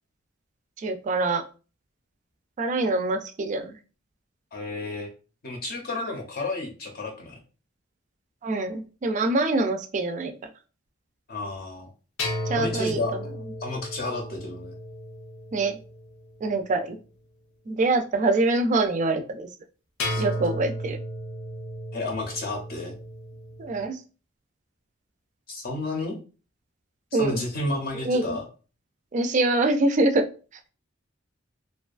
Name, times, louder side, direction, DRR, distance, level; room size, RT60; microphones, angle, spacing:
voice 1, 0.8-1.4 2.6-3.8 8.4-10.3 12.5-13.0 15.5-15.8 16.4-17.0 17.7-19.5 20.2-21.0 23.6-24.0 27.1-27.4 28.0-28.4 29.1-30.2, right 2 dB, 40° right, 6 dB, 0.3 m, -24 dB
voice 2, 4.5-5.1 5.4-7.4 11.3-11.9 12.5-13.1 13.6-14.7 20.1-20.2 21.9-22.9 25.5-26.2 27.1-28.4, left 2 dB, 50° left, 0 dB, 0.6 m, -31 dB
sound 1, 12.2-16.5 20.0-23.8, equal, 90° left, 0.6 m, -34 dB
2.5 x 2.3 x 2.3 m, 0.35 s
head